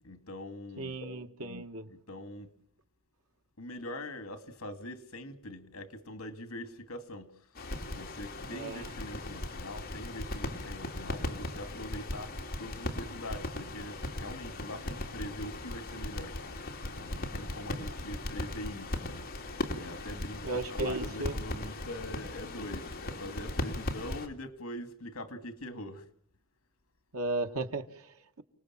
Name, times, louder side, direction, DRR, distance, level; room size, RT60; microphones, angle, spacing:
voice 1, 0.0-1.0 1.9-2.5 3.6-7.3 7.9-12.3 12.6-16.4 16.9-19.5 19.7-26.1, left 1 dB, 75° left, 2.4 m, -43 dB
voice 2, 0.8-1.9 8.5-8.9 20.4-21.3 27.1-28.4, right 2 dB, 85° right, 1.9 m, -35 dB
sound 1, 7.5-24.3, left 1 dB, 45° left, 3.2 m, -38 dB
29.5 x 19.5 x 7.5 m
head